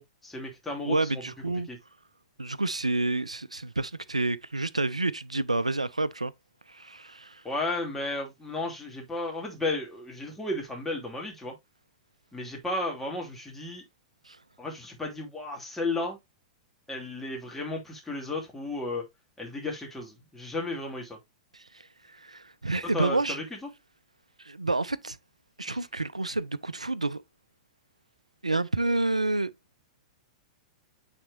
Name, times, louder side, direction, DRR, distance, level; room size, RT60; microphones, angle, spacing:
voice 1, 0.0-1.2 1.7-1.8 7.4-11.5 12.3-13.8 14.6-16.2 16.9-19.1 19.4-21.2 22.8-23.6, left 2 dB, 5° left, 2.7 m, -34 dB
voice 2, 0.9-1.7 2.4-6.3 6.7-7.4 14.3-14.4 21.5-23.4 24.4-25.2 25.6-27.2 28.4-29.5, right 2 dB, 85° right, 0.4 m, -29 dB
8.8 x 4.3 x 2.6 m
figure-of-eight pair, 100°, 3 cm